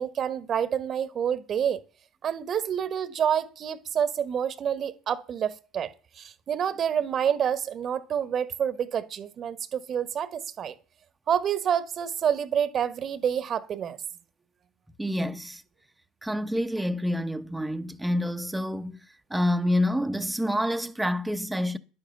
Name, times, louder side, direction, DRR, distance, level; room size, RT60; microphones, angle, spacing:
voice 1, 0.0-1.8 2.2-10.7 11.3-14.0, right 8 dB, 40° right, 1.3 m, -28 dB
voice 2, 15.0-15.6 16.2-19.0 19.3-21.8, equal, 5° right, 1.1 m, -27 dB
11.0 x 10.5 x 7.0 m
figure-of-eight pair, 65°, 0 cm